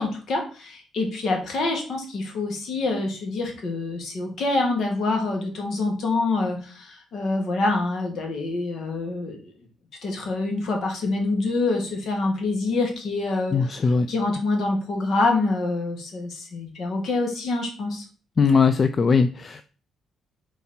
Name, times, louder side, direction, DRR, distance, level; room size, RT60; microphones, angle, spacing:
voice 1, 0.0-9.5 10.0-13.8 14.1-18.0, left 3 dB, 60° left, 2 dB, 2.0 m, -26 dB
voice 2, 13.5-14.1 18.4-19.6, left 5 dB, 40° left, 11 dB, 0.4 m, -20 dB
4.5 x 4.2 x 5.7 m, 0.39 s
cardioid pair, 90°, 0 cm